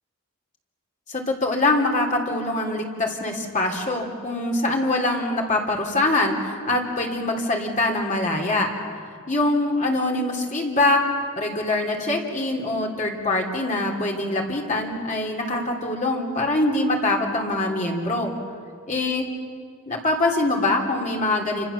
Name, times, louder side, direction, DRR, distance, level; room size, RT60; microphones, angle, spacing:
voice 1, 1.1-8.7 9.3-11.0 11.4-18.3 18.9-19.3 19.9-21.7, left 2 dB, 35° left, 0 dB, 3.1 m, -24 dB
28.0 x 26.5 x 7.1 m, 2.2 s
head